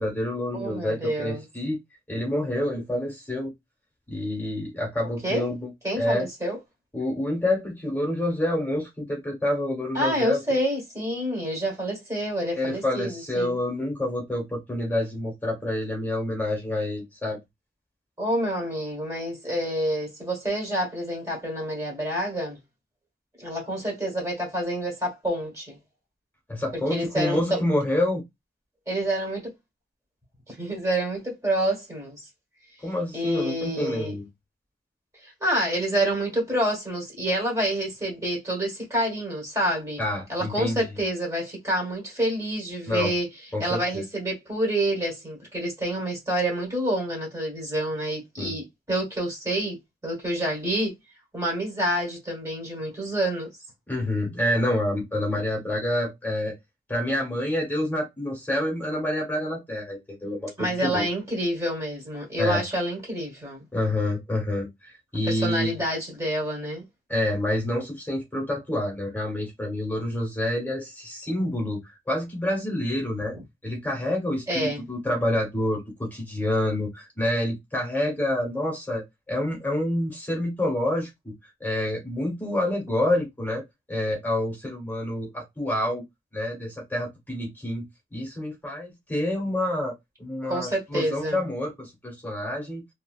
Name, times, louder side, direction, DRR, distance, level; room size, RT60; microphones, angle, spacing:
voice 1, 0.0-1.8 2.1-3.5 4.1-5.7 6.0-6.3 6.9-10.4 12.6-17.4 26.5-28.2 32.8-34.3 40.0-41.0 42.9-43.1 43.5-44.0 48.4-48.5 53.9-56.6 56.9-61.0 62.4-62.6 63.7-65.8 67.1-73.3 73.6-81.3 81.6-86.0 86.3-87.9 88.1-89.9 90.2-92.8, left 1 dB, 10° left, 1.1 m, -28 dB
voice 2, 0.5-1.5 5.2-5.5 5.8-6.6 9.9-13.6 18.2-22.6 23.4-25.8 26.9-27.6 28.9-29.5 30.5-32.2 33.1-34.1 35.2-40.0 40.3-43.3 43.6-49.8 50.0-50.9 51.3-53.5 60.6-63.7 65.3-66.8 73.3-73.4 74.5-74.9 90.5-91.4, right 1 dB, 20° right, 1.2 m, -28 dB
2.8 x 2.7 x 2.3 m
head